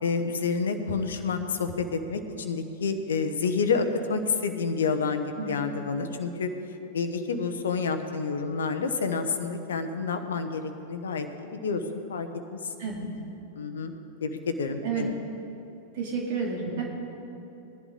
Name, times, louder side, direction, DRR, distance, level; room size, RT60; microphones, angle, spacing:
voice 1, 0.0-6.5 6.9-12.7 13.5-13.9 14.2-15.1, left 4 dB, 65° left, 9 dB, 1.0 m, -29 dB
voice 2, 15.9-16.8, right 5 dB, 50° right, -2 dB, 2.7 m, -30 dB
20.0 x 11.0 x 3.8 m, 2.9 s
figure-of-eight pair, 90°, 0 cm